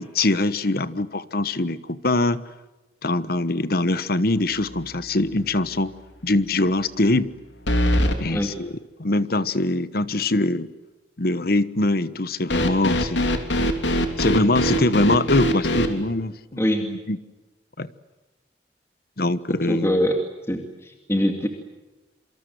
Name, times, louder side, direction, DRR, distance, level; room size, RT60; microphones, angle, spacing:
voice 1, 0.0-2.4 3.0-5.9 6.2-7.3 8.2-8.7 9.0-10.7 11.2-13.3 14.2-17.2 17.8-17.9 19.2-19.9, left 2 dB, 55° left, 15 dB, 1.2 m, -23 dB
sound 1, 4.6-5.0 5.4-5.5 7.7-8.2 12.5-15.9, equal, 85° left, 3.4 m, -22 dB
voice 2, 16.6-16.9 19.7-20.2 20.5-21.5, equal, 15° left, 4 dB, 2.4 m, -23 dB
27.5 x 25.5 x 7.8 m, 1.1 s
head